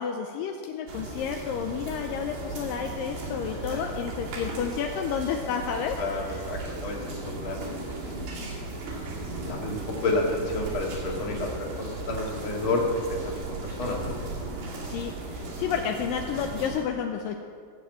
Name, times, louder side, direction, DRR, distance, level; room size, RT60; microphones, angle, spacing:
voice 1, 0.0-6.2 14.9-17.4, left 7 dB, 80° left, 4 dB, 2.0 m, -31 dB
sound 1, 0.9-16.8, right 2 dB, 85° right, 4.6 m, -36 dB
voice 2, 6.0-8.4 8.8-14.2, left 2 dB, 40° left, -1 dB, 2.2 m, -31 dB
16.5 x 7.5 x 7.6 m, 2.2 s
omnidirectional pair, 4.7 m